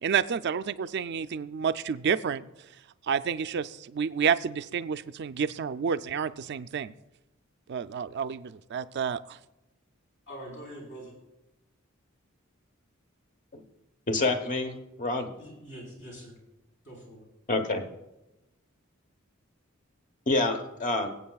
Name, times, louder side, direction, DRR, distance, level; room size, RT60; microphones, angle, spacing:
voice 1, 0.0-2.4 3.1-6.9 7.7-9.4, right 7 dB, 55° right, 13 dB, 0.4 m, -29 dB
voice 2, 10.3-11.2 15.4-16.4 16.8-17.3, right 1 dB, 60° left, -3 dB, 4.3 m, -44 dB
voice 3, 14.1-15.3 17.5-17.8 20.3-21.1, left 2 dB, 40° left, 6 dB, 1.0 m, -27 dB
23.5 x 8.1 x 2.3 m, 0.95 s
head